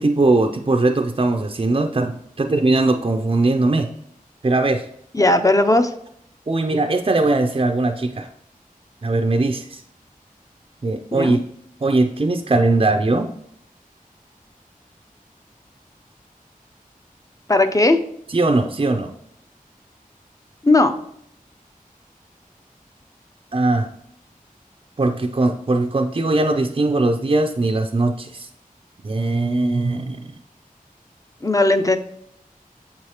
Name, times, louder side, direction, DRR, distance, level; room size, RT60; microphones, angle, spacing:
voice 1, 0.0-3.9 4.4-4.9 6.5-8.3 9.0-9.8 10.8-11.4 11.8-13.3 18.3-19.1 23.5-23.9 25.0-28.5 29.0-30.3, right 2 dB, 40° right, 4 dB, 0.4 m, -20 dB
voice 2, 5.1-5.9 11.1-11.4 17.5-18.0 20.6-20.9 31.4-32.0, left 2 dB, 25° left, 8 dB, 0.4 m, -16 dB
7.0 x 4.7 x 2.9 m, 0.72 s
wide cardioid pair, 50°, 15 cm